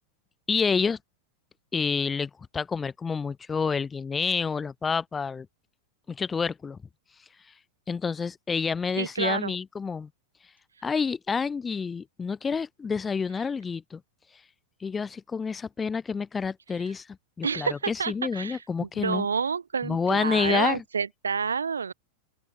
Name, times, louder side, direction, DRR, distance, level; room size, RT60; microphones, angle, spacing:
voice 1, 0.5-1.0 1.7-5.5 6.1-6.8 7.9-10.1 10.8-14.0 14.8-17.1 17.4-19.3 19.8-20.8, left 5 dB, 15° left, 3.3 m, -28 dB
voice 2, 9.0-9.5 17.4-18.6 19.0-21.9, right 6 dB, 75° right, 1.6 m, -29 dB
open air
figure-of-eight pair, 90°, 0 cm